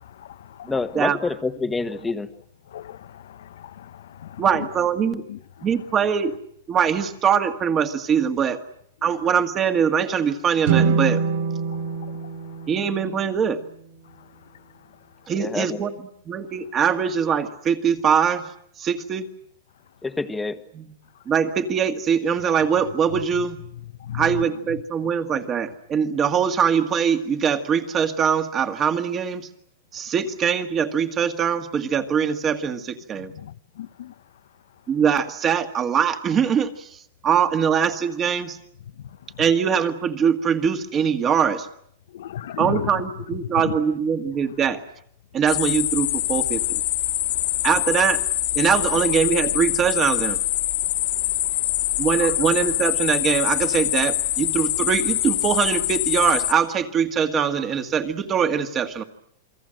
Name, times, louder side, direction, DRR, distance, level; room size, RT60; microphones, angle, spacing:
voice 1, 0.0-0.7 2.7-4.4 5.3-5.4 24.0-24.2 33.2-34.1 42.1-42.9 52.2-52.3, left 11 dB, 80° left, 1.0 m, -36 dB
voice 2, 0.7-2.3 15.3-15.8 20.0-20.6, left 3 dB, 10° left, 1.3 m, -27 dB
voice 3, 4.4-5.2 5.6-6.3 6.7-8.6 9.0-11.2 12.7-13.6 15.3-15.9 16.3-18.5 18.8-19.3 20.7-20.9 21.3-23.6 24.1-29.5 29.9-33.3 34.9-38.6 39.4-41.7 42.6-44.8 45.3-46.8 47.6-48.2 48.5-50.4 52.0-59.0, right 7 dB, 25° right, 1.8 m, -22 dB
sound 1, 10.6-13.9, right 6 dB, 70° right, 3.5 m, -25 dB
sound 2, 45.5-56.5, left 16 dB, 65° left, 2.1 m, -24 dB
28.0 x 23.0 x 7.8 m
supercardioid pair, 155°, 0 cm